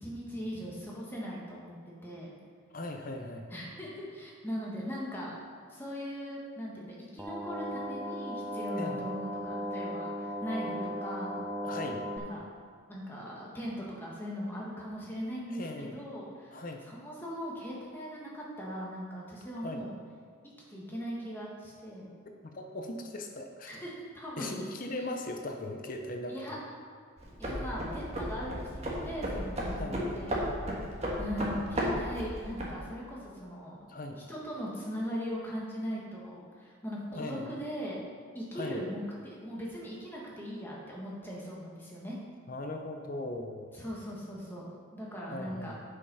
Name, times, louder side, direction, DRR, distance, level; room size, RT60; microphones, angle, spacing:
voice 1, 0.0-1.7 2.0-2.3 3.5-5.3 5.7-11.4 12.2-12.4 12.9-19.9 20.7-22.1 23.7-24.6 26.3-26.6 27.4-30.3 31.2-33.8 34.3-38.0 38.3-42.2 43.7-45.8, equal, 10° left, -5 dB, 1.6 m, -39 dB
voice 2, 2.7-3.5 8.8-9.0 11.6-12.1 15.5-16.1 16.5-16.8 19.6-19.8 22.4-23.8 24.4-26.3 27.5-27.7 29.8-30.0 33.9-34.2 37.1-37.5 38.5-38.8 42.5-43.7 45.3-45.8, left 2 dB, 40° left, 4 dB, 0.6 m, -39 dB
sound 1, 7.2-12.2, equal, 5° right, 0.4 m, -36 dB
sound 2, 27.2-32.8, equal, 30° right, 1.4 m, -34 dB
8.3 x 5.5 x 5.5 m, 2.1 s
head